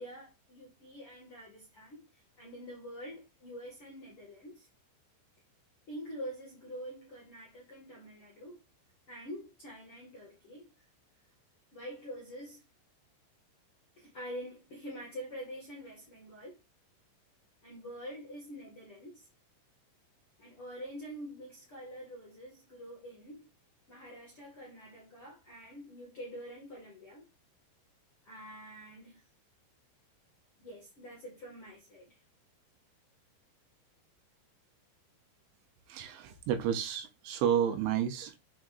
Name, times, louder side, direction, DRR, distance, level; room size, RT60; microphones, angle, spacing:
voice 1, 0.0-4.7 5.9-8.6 9.1-10.9 11.7-12.6 14.0-16.6 17.6-19.3 20.4-23.5 23.9-27.3 28.2-29.2 30.6-32.2, equal, 50° left, 1.7 m, -46 dB
voice 2, 35.9-38.4, right 9 dB, 80° right, 3.2 m, -31 dB
7.5 x 5.1 x 2.6 m
omnidirectional pair, 5.6 m